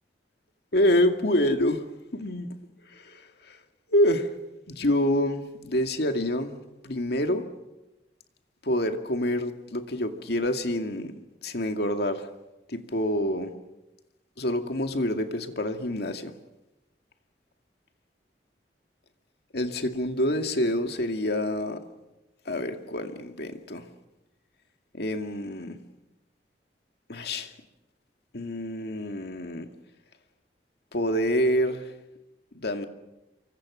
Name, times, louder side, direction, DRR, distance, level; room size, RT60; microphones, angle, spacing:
voice 1, 0.7-1.8 2.1-2.5 2.9-3.6 3.9-4.4 4.7-7.5 8.6-11.1 11.4-12.3 12.7-13.5 14.4-16.3 19.5-21.8 22.5-23.9 24.9-25.8 27.1-27.5 28.3-29.7 30.9-31.9 32.5-32.9, left 1 dB, 65° left, 6 dB, 2.3 m, -27 dB
28.5 x 24.5 x 6.3 m, 0.98 s
head